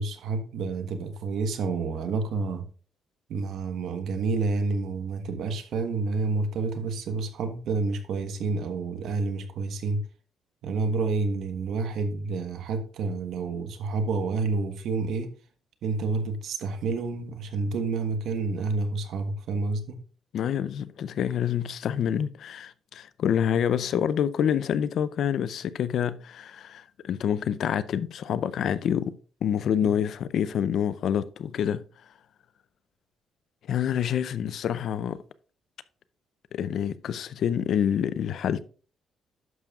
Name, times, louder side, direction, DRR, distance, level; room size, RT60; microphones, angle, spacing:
voice 1, 0.0-2.6 3.3-10.0 10.6-15.3 15.8-20.0 29.8-29.9, right 3 dB, 75° right, 1.2 m, -29 dB
voice 2, 20.3-29.1 29.4-31.8 33.7-35.2 36.5-38.6, left 9 dB, 70° left, 0.5 m, -27 dB
11.0 x 6.9 x 2.4 m
cardioid pair, 90°, 0 cm